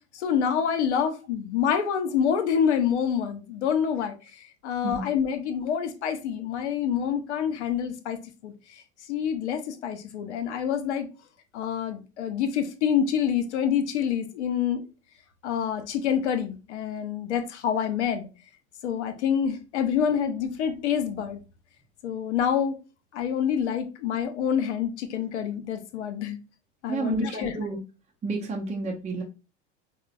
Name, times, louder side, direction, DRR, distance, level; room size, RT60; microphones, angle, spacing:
voice 1, 0.1-8.8 9.1-11.1 11.5-14.8 15.4-18.3 18.8-21.4 22.0-22.8 23.1-26.4 26.8-27.6, left 8 dB, 85° left, 0.7 m, -27 dB
voice 2, 26.9-27.8 28.2-29.2, right 3 dB, 20° right, 0.6 m, -30 dB
4.3 x 2.0 x 2.5 m
hypercardioid pair, 95°, 34 cm